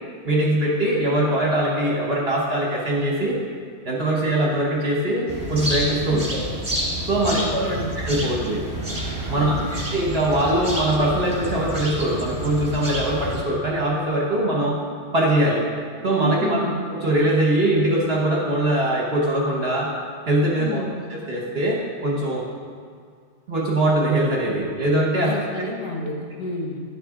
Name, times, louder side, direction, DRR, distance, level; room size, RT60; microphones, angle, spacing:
voice 1, 0.2-3.4 3.8-6.4 7.1-8.6 9.3-14.8 15.1-15.6 16.0-16.6 16.9-19.9 20.3-20.8 21.1-22.4 23.5-25.3, right 1 dB, 45° right, -3 dB, 1.0 m, -22 dB
sound 1, 5.3-13.4, right 1 dB, 15° right, 1.2 m, -29 dB
voice 2, 7.3-7.9 9.3-9.9 16.4-16.8 20.6-21.0 25.3-26.8, left 2 dB, 70° left, 1 dB, 1.5 m, -31 dB
10.5 x 6.6 x 3.6 m, 2.1 s
omnidirectional pair, 1.9 m